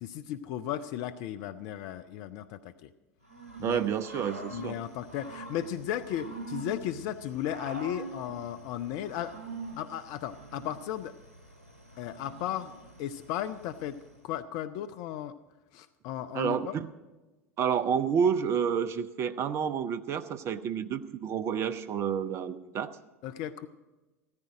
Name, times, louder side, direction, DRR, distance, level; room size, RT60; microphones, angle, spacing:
voice 1, 0.0-2.9 3.6-3.8 4.5-9.3 9.8-11.1 12.0-12.7 13.0-14.0 14.2-15.3 15.7-16.7 23.2-23.7, left 11 dB, 45° left, 10 dB, 0.5 m, -35 dB
Growling / Cricket, 3.3-14.2, right 2 dB, 80° right, 1.7 m, -45 dB
voice 2, 3.6-4.8 16.3-16.9 17.6-22.9, right 7 dB, 35° right, 12 dB, 0.6 m, -29 dB
15.0 x 14.0 x 5.0 m, 1.1 s
figure-of-eight pair, 75°, 8 cm